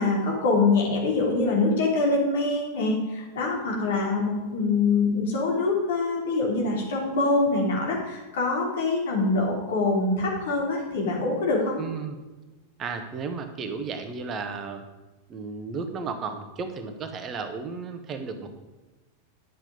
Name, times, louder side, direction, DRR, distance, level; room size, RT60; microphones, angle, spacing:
voice 1, 0.0-11.8, left 3 dB, 60° left, -1 dB, 3.3 m, -24 dB
voice 2, 11.8-12.1 12.8-14.8 15.3-18.6, right 5 dB, 30° right, 7 dB, 1.2 m, -34 dB
10.5 x 7.6 x 5.2 m, 1.2 s
figure-of-eight pair, 90°, 0 cm